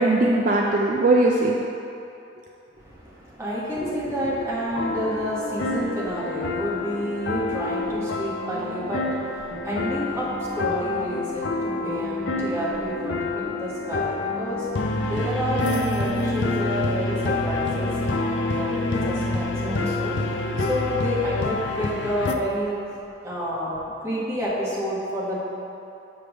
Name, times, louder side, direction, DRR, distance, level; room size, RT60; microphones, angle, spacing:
voice 1, 0.0-1.6 20.1-20.7, right 2 dB, 45° right, -1 dB, 0.4 m, -21 dB
voice 2, 2.8-22.8 23.2-23.8 24.0-25.4, equal, 15° right, -8 dB, 1.4 m, -29 dB
sound 1, 4.6-22.3, left 3 dB, 75° left, 0.4 m, -28 dB
sound 2, 4.8-19.9, left 1 dB, 10° left, 0.7 m, -34 dB
7.0 x 3.4 x 6.2 m, 2.8 s
head